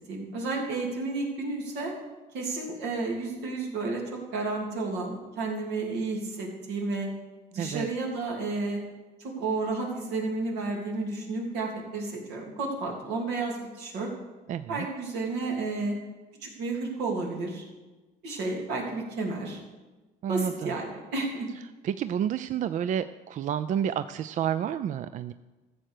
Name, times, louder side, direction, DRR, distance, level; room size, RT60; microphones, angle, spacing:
voice 1, 0.1-1.9 2.3-4.0 4.3-7.1 7.5-8.8 9.2-14.1 14.7-15.9 16.4-17.6 18.2-19.6 20.3-21.5, right 3 dB, 85° right, 0 dB, 3.2 m, -31 dB
voice 2, 7.6-7.9 14.5-14.9 20.2-20.7 21.8-25.3, right 9 dB, 50° right, 13 dB, 0.4 m, -30 dB
13.5 x 7.6 x 6.6 m, 1.2 s
cardioid pair, 110°, 17 cm